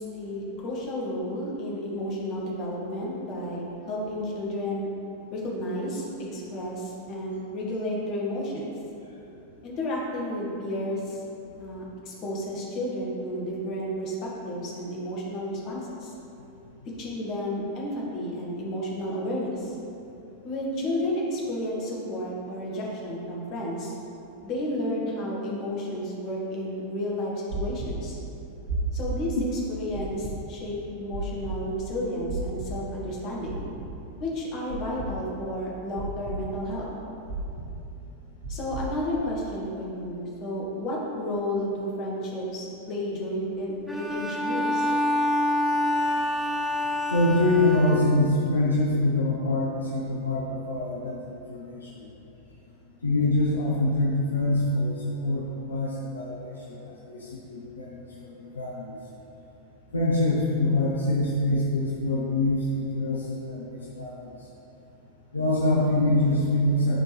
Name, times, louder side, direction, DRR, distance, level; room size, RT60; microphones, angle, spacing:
voice 1, 0.0-4.9 5.3-6.1 6.3-8.7 9.6-11.2 11.6-16.1 17.0-19.8 20.4-23.9 24.4-28.2 28.9-29.4 29.7-33.6 34.2-36.8 38.5-44.9, left 1 dB, 35° left, -4 dB, 1.6 m, -32 dB
sound 1, 27.5-27.9 28.7-29.1 29.9-30.3 31.1-31.5 32.3-32.7 33.5-33.9 34.7-35.1 36.0-36.4 37.3-37.7 38.4-38.8, right 5 dB, 60° right, 1.0 m, -33 dB
Bowed string instrument, 43.9-48.5, left 1 dB, ahead, 0.6 m, -27 dB
voice 2, 47.1-50.4 50.7-51.2 51.5-51.7 53.0-55.0 55.2-56.3 56.7-56.8 57.1-57.9 58.5-58.8 59.9-64.1 65.3-67.0, left 2 dB, 75° left, -4 dB, 0.8 m, -24 dB
10.0 x 4.4 x 3.2 m, 2.9 s
figure-of-eight pair, 90°, 0 cm